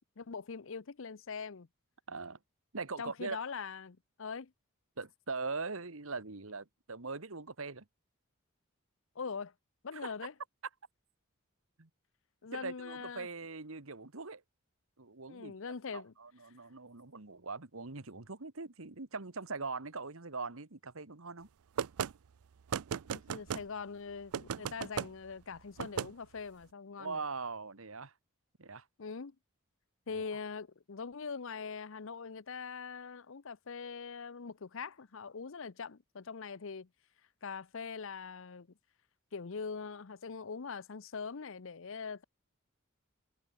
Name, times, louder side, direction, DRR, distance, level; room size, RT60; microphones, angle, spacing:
voice 1, 0.0-1.7 3.0-4.5 9.2-9.5 9.8-10.3 12.4-13.3 15.3-16.1 23.1-27.2 29.0-29.3 30.1-36.9 37.4-38.7 39.3-42.2, left 5 dB, 60° left, 0.7 m, -42 dB
voice 2, 2.1-2.4 2.7-3.4 5.0-7.8 9.9-10.1 11.8-11.9 12.5-14.4 15.0-15.5 15.9-21.5 27.0-28.1 28.6-28.9 30.1-30.2, right 4 dB, 65° right, 1.6 m, -41 dB
sound 1, 21.8-22.1 22.7-23.6 24.3-25.1 25.8-26.1, right 7 dB, 80° right, 0.4 m, -35 dB
head